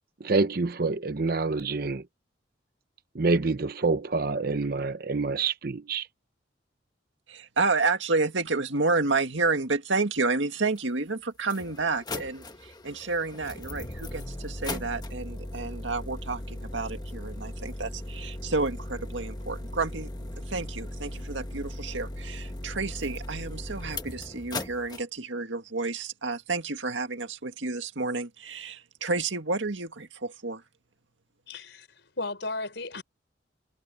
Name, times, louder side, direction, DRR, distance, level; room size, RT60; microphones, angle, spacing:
voice 1, 0.2-2.0 3.1-6.1, right 3 dB, 55° right, 0.8 m, -27 dB
voice 2, 7.3-20.1 20.5-30.6, right 3 dB, 80° right, 2.0 m, -30 dB
sound 1, 10.8-10.9 11.4-25.0, left 1 dB, 20° left, 1.3 m, -38 dB
voice 3, 31.5-33.0, left 2 dB, 65° left, 5.5 m, -35 dB
head